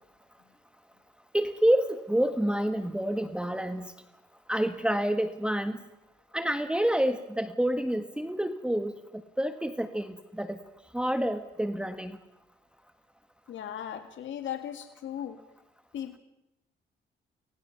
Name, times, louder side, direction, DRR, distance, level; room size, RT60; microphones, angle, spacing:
voice 1, 1.3-3.9 4.5-5.8 6.3-8.9 9.4-10.6 10.9-12.2, right 1 dB, 5° right, 8 dB, 1.5 m, -28 dB
voice 2, 13.5-15.4 15.9-16.2, left 10 dB, 70° left, 7 dB, 2.0 m, -37 dB
30.0 x 22.0 x 5.9 m, 0.88 s
cardioid pair, 90°, 20 cm